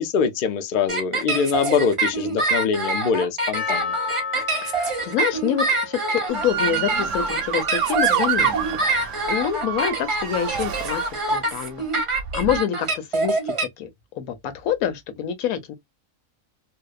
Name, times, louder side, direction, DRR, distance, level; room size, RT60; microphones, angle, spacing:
voice 1, 0.0-4.0, left 6 dB, 65° left, 0.5 m, -23 dB
sound 1, 0.9-13.6, right 3 dB, 30° right, 0.7 m, -25 dB
Percussion, 3.5-8.5, left 6 dB, 45° left, 1.0 m, -34 dB
voice 2, 4.6-11.8 12.1-13.9 14.2-15.8, left 9 dB, 85° left, 1.1 m, -27 dB
Motor vehicle (road) / Siren, 6.3-11.5 12.2-12.6, right 8 dB, 70° right, 0.8 m, -27 dB
2.7 x 2.0 x 2.2 m
omnidirectional pair, 1.5 m